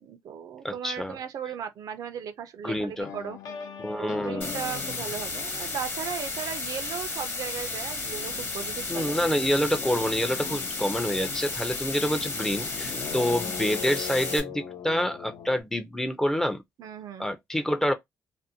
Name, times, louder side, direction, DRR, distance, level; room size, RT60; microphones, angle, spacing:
voice 1, 0.0-3.4 3.9-9.2 9.8-10.0 16.8-17.3, right 8 dB, 75° right, 0.4 m, -37 dB
voice 2, 0.6-1.1 2.6-3.1 3.8-4.5 8.9-16.6 17.2-17.9, equal, 5° left, 0.4 m, -27 dB
sound 1, 3.0-7.1 7.3-15.6, left 7 dB, 65° left, 0.5 m, -41 dB
sound 2, 4.4-14.4, left 3 dB, 40° left, 1.1 m, -33 dB
2.5 x 2.0 x 2.7 m
cardioid pair, 125°, 6 cm